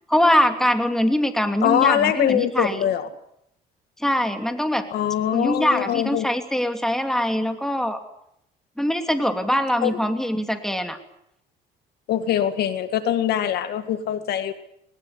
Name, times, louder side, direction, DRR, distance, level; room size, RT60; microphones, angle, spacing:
voice 1, 0.1-2.8 4.0-4.9 5.3-8.0 8.8-11.0, equal, 5° left, 6 dB, 2.9 m, -22 dB
voice 2, 1.6-3.1 4.9-6.3 9.8-10.0 12.1-14.5, left 10 dB, 70° left, 10 dB, 2.1 m, -22 dB
21.0 x 20.0 x 9.7 m, 0.76 s
cardioid pair, 110°, 17 cm